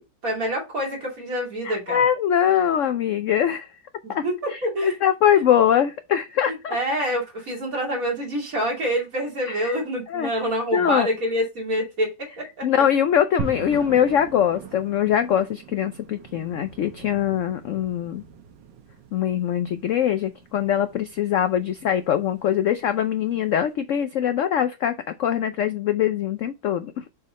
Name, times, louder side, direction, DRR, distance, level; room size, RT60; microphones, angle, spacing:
voice 1, 0.2-2.0 4.0-5.0 6.5-12.8, equal, 50° right, 3.1 m, -27 dB
voice 2, 1.6-3.7 4.1-4.2 4.5-6.8 9.5-9.7 10.1-10.3 10.7-11.1 12.6-18.2 19.1-27.0, left 9 dB, 75° left, 0.7 m, -22 dB
sound 1, 13.4-23.6, right 6 dB, 85° right, 1.6 m, -41 dB
6.7 x 3.7 x 4.1 m
omnidirectional pair, 1.9 m